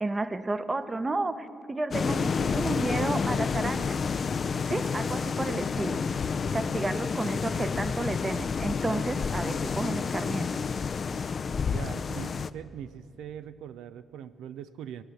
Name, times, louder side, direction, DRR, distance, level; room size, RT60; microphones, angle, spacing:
voice 1, 0.0-4.0 4.7-6.0 6.5-10.6, right 2 dB, 25° right, 12 dB, 0.8 m, -32 dB
sound 1, 1.9-12.5, left 5 dB, 45° left, 0.4 m, -29 dB
voice 2, 11.7-15.0, right 9 dB, 80° right, 12 dB, 0.4 m, -41 dB
17.0 x 11.0 x 7.8 m, 2.9 s
cardioid pair, 75°, 0 cm